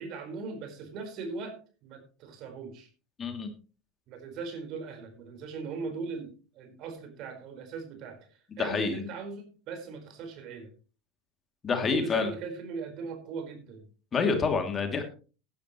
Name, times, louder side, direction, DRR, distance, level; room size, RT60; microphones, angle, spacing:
voice 1, 0.0-2.9 4.1-8.3 8.6-10.7 11.8-13.8, right 4 dB, 50° right, 5 dB, 4.6 m, -39 dB
voice 2, 3.2-3.5 8.6-9.0 11.6-12.3 14.1-15.0, left 5 dB, 30° left, 5 dB, 2.7 m, -27 dB
17.0 x 11.0 x 3.1 m, 0.36 s
hypercardioid pair, 80°, 0 cm